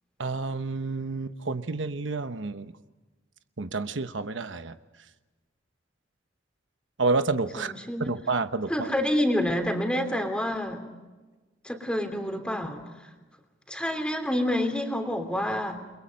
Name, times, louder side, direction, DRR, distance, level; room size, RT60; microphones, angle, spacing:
voice 1, 0.2-2.7 3.6-4.8 7.0-7.7 8.0-8.9, right 3 dB, 80° right, 10 dB, 1.1 m, -29 dB
voice 2, 7.6-8.1 8.7-10.8 11.6-12.8 13.7-15.8, left 1 dB, 5° left, 5 dB, 3.2 m, -28 dB
30.0 x 23.0 x 5.3 m, 1.2 s
head